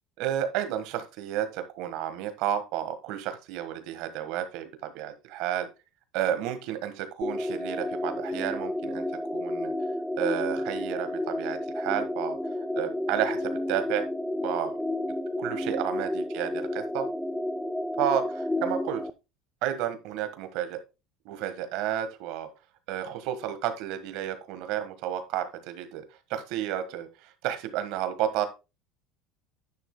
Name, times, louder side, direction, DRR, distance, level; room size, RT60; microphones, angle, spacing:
voice 1, 0.2-5.7 6.1-9.0 9.3-9.7 10.2-12.4 12.7-14.0 14.4-14.8 15.4-17.1 18.0-19.0 19.6-20.8 21.2-22.5 22.9-26.0 26.3-28.5, right 11 dB, 70° right, 9 dB, 1.4 m, -31 dB
sound 1, 7.2-19.1, left 1 dB, 5° left, 0.5 m, -31 dB
10.0 x 9.8 x 2.2 m, 0.27 s
supercardioid pair, 125°, 0 cm